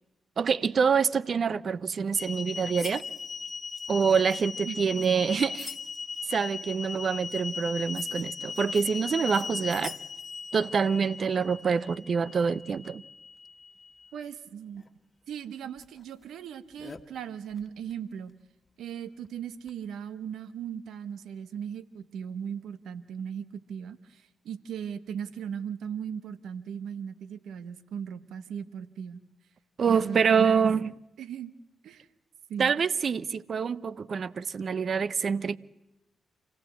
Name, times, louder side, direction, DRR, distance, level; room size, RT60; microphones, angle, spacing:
voice 1, 0.4-3.0 3.9-5.7 6.3-10.0 10.5-13.0 29.8-30.9 32.6-35.6, right 6 dB, 55° right, 0.7 m, -26 dB
sound 1, 2.2-14.1 14.9-15.0 15.8-15.9 16.8-17.0 19.7-19.8, left 5 dB, 40° left, 1.7 m, -38 dB
voice 2, 4.6-5.2 14.1-14.8 15.3-18.3 18.8-29.2 29.9-30.7 31.2-31.5 31.8-32.1 32.5-32.7, right 8 dB, 75° right, 1.1 m, -38 dB
27.5 x 16.0 x 8.2 m
hypercardioid pair, 40°, 0 cm